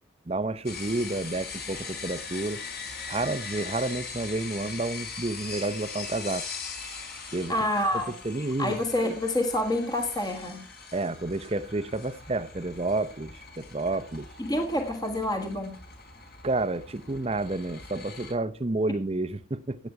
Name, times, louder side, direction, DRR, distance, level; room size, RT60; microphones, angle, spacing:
voice 1, 0.3-2.6 3.1-6.4 7.3-7.5 8.2-8.8 9.0-9.1 10.9-14.3 16.4-19.8, right 2 dB, 30° right, 0.6 m, -30 dB
sound 1, 0.7-18.3, left 5 dB, 50° left, 4.4 m, -41 dB
voice 2, 7.5-8.1 8.6-10.6 14.4-15.7, left 1 dB, 20° left, 1.5 m, -28 dB
15.0 x 9.2 x 4.7 m
head